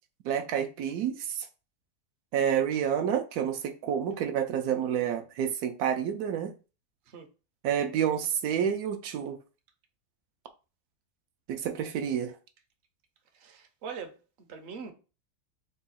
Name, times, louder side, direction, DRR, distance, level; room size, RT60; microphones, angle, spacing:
voice 1, 0.2-1.5 2.3-6.5 7.6-9.4 11.5-12.3, right 8 dB, 80° right, 1.1 m, -29 dB
voice 2, 13.3-14.9, right 6 dB, 55° right, 0.9 m, -42 dB
3.7 x 2.3 x 4.1 m
omnidirectional pair, 1.6 m